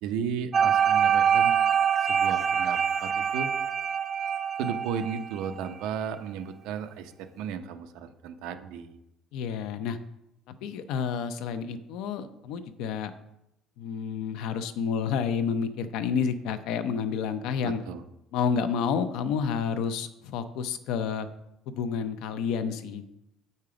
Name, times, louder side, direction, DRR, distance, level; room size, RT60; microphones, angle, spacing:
voice 1, 0.0-1.6 2.0-3.5 4.6-9.0 17.6-18.0, right 7 dB, 85° right, 8 dB, 0.7 m, -34 dB
sound 1, 0.5-5.7, right 8 dB, 25° right, 0.3 m, -25 dB
voice 2, 9.3-10.0 10.6-13.1 13.8-17.8 18.3-21.3 21.7-23.0, left 6 dB, 70° left, 10 dB, 0.6 m, -30 dB
7.6 x 5.4 x 4.9 m, 0.85 s
cardioid pair, 180°, 0 cm